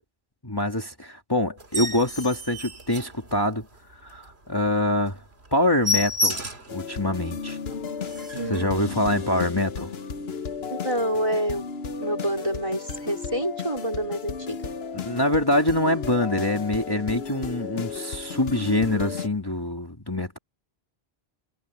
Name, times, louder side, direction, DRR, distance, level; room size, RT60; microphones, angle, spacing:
voice 1, 0.4-3.7 4.0-5.2 5.5-6.4 6.7-7.6 8.2-8.3 8.5-9.9 14.9-20.4, left 1 dB, 20° left, 2.2 m, -25 dB
sound 1, 1.6-3.7 4.2-4.3 4.7-4.8 5.1-5.2 5.5-6.8 7.3-7.4 7.7-7.8 8.0-8.5 9.3-9.5, left 2 dB, 75° right, 3.1 m, -30 dB
sound 2, 6.7-19.3, left 6 dB, 70° left, 1.3 m, -34 dB
voice 2, 8.3-8.7 10.7-11.6 12.0-14.7, right 1 dB, 30° right, 4.3 m, -28 dB
omnidirectional pair, 1.1 m